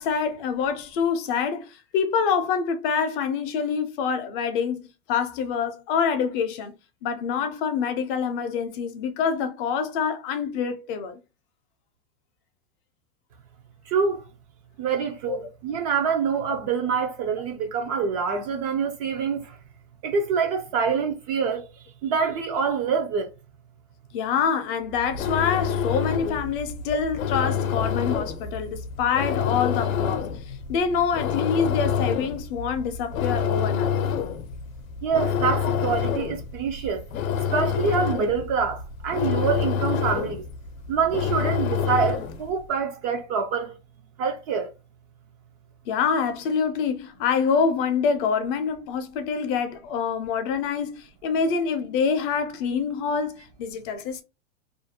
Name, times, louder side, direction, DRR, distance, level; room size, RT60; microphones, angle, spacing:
voice 1, 0.0-4.8 5.1-6.7 7.0-11.2 15.3-15.4 24.1-33.9 45.9-54.2, left 6 dB, 45° left, 0.5 m, -26 dB
voice 2, 13.9-14.2 14.8-19.5 20.0-21.6 22.0-23.3 35.0-37.0 37.5-40.4 40.9-43.7 44.2-44.7, right 6 dB, 35° right, 0.4 m, -26 dB
sound 1, 24.9-42.5, left 7 dB, 85° left, 0.6 m, -27 dB
2.5 x 2.1 x 2.7 m
supercardioid pair, 135°, 40 cm